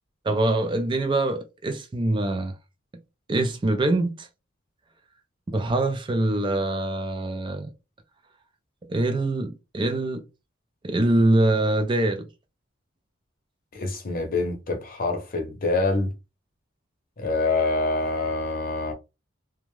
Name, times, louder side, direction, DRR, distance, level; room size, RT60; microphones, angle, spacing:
voice 1, 0.2-2.6 3.3-4.3 5.5-7.7 8.9-10.2 10.8-12.3, right 2 dB, 25° right, 0.4 m, -24 dB
voice 2, 13.7-16.1 17.2-18.9, left 3 dB, 45° left, 0.7 m, -26 dB
2.5 x 2.2 x 3.1 m
head